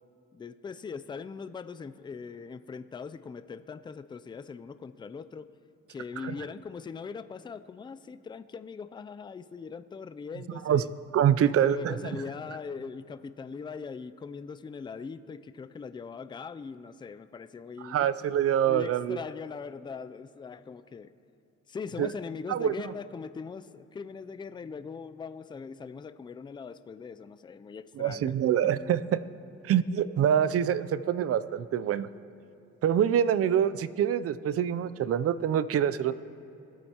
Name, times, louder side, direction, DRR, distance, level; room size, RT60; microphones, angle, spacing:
voice 1, 0.3-5.5 5.9-10.9 11.4-18.1 18.6-21.1 21.7-28.3, left 5 dB, 15° left, 12 dB, 0.3 m, -41 dB
voice 2, 11.1-12.0 17.8-19.2 22.0-22.1 22.5-22.9 28.0-29.3 29.6-32.1 32.8-36.1, right 9 dB, 50° right, 15 dB, 0.5 m, -25 dB
19.5 x 8.8 x 2.9 m, 2.8 s
cardioid pair, 90°, 30 cm